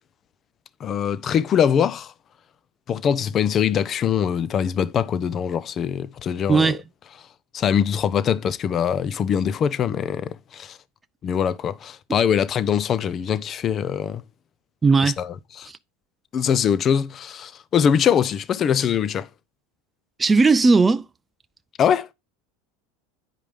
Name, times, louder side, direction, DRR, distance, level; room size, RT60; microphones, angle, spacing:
voice 1, 0.8-2.1 2.9-6.8 7.5-10.8 11.2-14.2 15.0-15.7 16.3-19.3 21.8-22.1, left 8 dB, 40° left, 0.6 m, -23 dB
voice 2, 14.8-15.2 20.2-21.0, right 4 dB, 20° right, 0.4 m, -16 dB
9.1 x 5.0 x 3.5 m
hypercardioid pair, 95°, 0 cm